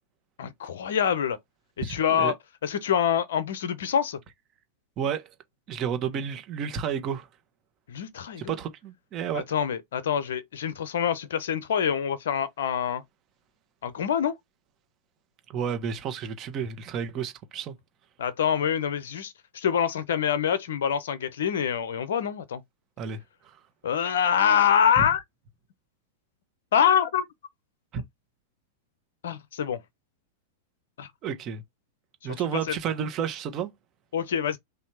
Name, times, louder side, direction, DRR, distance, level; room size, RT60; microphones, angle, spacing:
voice 1, 0.4-1.4 1.8-2.4 2.6-4.2 7.9-8.6 9.3-13.0 13.8-14.3 18.2-22.6 23.8-25.2 26.7-27.3 29.2-29.8 31.0-31.1 32.5-32.8 34.1-34.6, left 8 dB, 70° left, 0.7 m, -25 dB
voice 2, 1.8-2.3 5.0-5.3 5.7-7.3 8.4-9.4 15.5-17.7 23.0-23.5 27.9-28.0 31.2-31.6 32.2-33.7, right 7 dB, 35° right, 1.1 m, -31 dB
3.4 x 2.7 x 4.6 m
hypercardioid pair, 100°, 0 cm